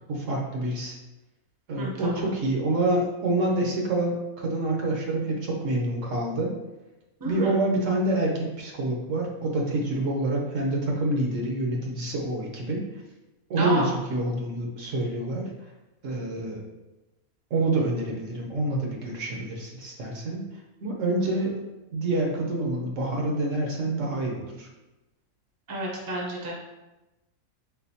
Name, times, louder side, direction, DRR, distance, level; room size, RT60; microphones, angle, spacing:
voice 1, 0.1-0.9 1.7-6.5 7.2-12.8 13.5-15.4 16.0-16.6 17.5-20.4 20.8-21.5 21.9-24.7, right 2 dB, 65° right, 0 dB, 1.1 m, -27 dB
voice 2, 1.8-2.2 7.2-7.5 13.6-13.9 21.2-21.3 25.7-26.5, right 1 dB, 20° right, -2 dB, 0.6 m, -30 dB
4.1 x 3.8 x 2.7 m, 1.0 s
omnidirectional pair, 1.5 m